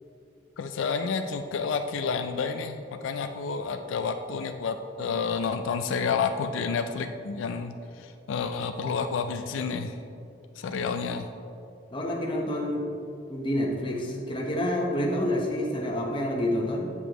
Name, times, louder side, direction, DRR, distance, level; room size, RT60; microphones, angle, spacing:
voice 1, 0.6-9.9 10.6-11.3, left 5 dB, 80° left, 7 dB, 0.4 m, -30 dB
voice 2, 11.9-12.9 13.3-16.9, left 1 dB, 25° left, -1 dB, 0.9 m, -28 dB
8.2 x 6.9 x 3.0 m, 2.6 s
head